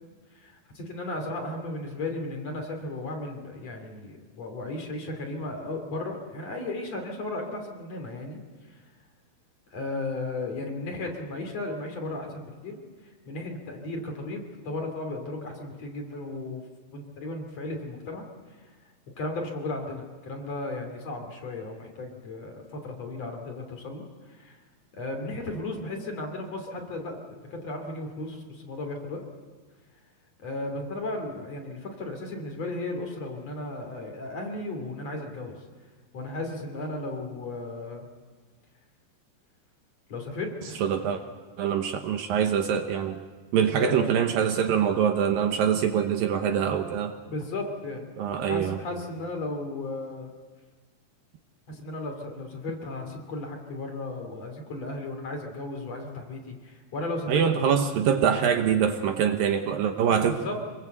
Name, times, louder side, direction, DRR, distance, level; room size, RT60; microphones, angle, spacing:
voice 1, 0.3-8.4 8.7-8.8 9.7-16.6 16.9-18.3 18.5-18.7 19.2-24.6 24.9-29.2 30.4-35.5 36.1-38.1 40.1-40.9 43.7-44.1 47.3-48.1 48.5-50.3 51.7-57.4 60.1-60.6, left 2 dB, 45° left, 3 dB, 3.7 m, -35 dB
voice 2, 40.8-41.2 41.6-43.2 43.5-47.1 48.2-48.8 57.3-60.4, right 8 dB, 70° right, 6 dB, 2.5 m, -24 dB
26.0 x 21.5 x 8.1 m, 1.4 s
omnidirectional pair, 4.7 m